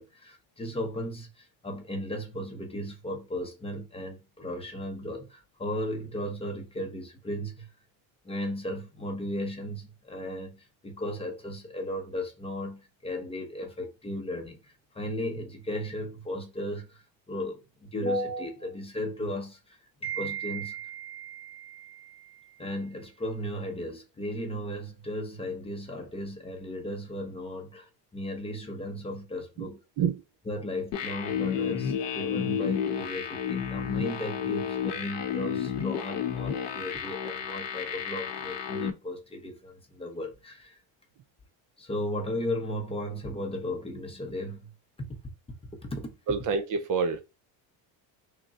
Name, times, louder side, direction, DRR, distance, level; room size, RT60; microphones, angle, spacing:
voice 1, 0.0-7.7 8.2-29.8 30.5-40.8 41.8-44.7 45.0-45.2 45.8-46.1, equal, 15° left, 0.6 m, -35 dB
sound 1, 30.9-38.9, left 8 dB, 65° left, 0.8 m, -31 dB
voice 2, 46.3-47.2, right 5 dB, 45° right, 0.4 m, -27 dB
3.6 x 2.1 x 3.8 m
cardioid pair, 145°, 44 cm